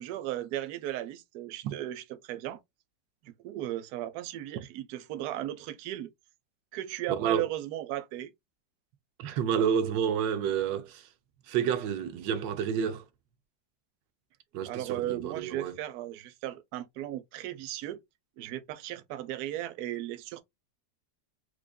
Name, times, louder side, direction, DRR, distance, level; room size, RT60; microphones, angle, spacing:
voice 1, 0.0-2.6 3.2-6.1 6.7-8.3 14.7-18.0 18.4-20.4, right 13 dB, 70° right, 1.0 m, -36 dB
voice 2, 7.1-7.5 9.2-11.1 11.5-13.0 14.5-15.8, right 8 dB, 85° right, 1.3 m, -29 dB
4.7 x 2.4 x 2.2 m
omnidirectional pair, 1.9 m